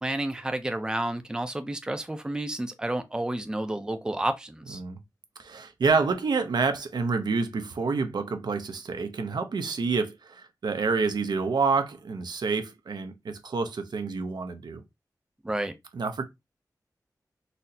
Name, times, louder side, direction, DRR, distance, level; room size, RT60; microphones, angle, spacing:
voice 1, 0.0-4.8 15.4-15.7, right 1 dB, 10° right, 0.4 m, -30 dB
voice 2, 5.4-14.8 15.9-16.2, right 4 dB, 90° right, 0.5 m, -28 dB
4.0 x 2.0 x 2.6 m
wide cardioid pair, 105°, 7 cm